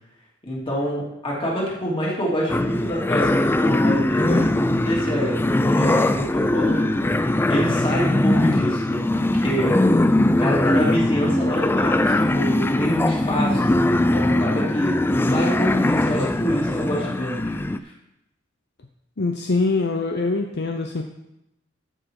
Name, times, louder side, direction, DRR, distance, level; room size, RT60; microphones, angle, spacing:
voice 1, 0.4-5.4 5.6-6.9 7.5-9.0 9.4-9.7 10.2-15.0 15.2-17.5, equal, 25° left, -4 dB, 2.9 m, -26 dB
sound 1, 2.5-17.8, left 1 dB, 10° left, 0.3 m, -21 dB
voice 2, 19.2-21.0, left 3 dB, 55° left, 4 dB, 0.7 m, -23 dB
14.5 x 6.3 x 4.8 m, 0.87 s
head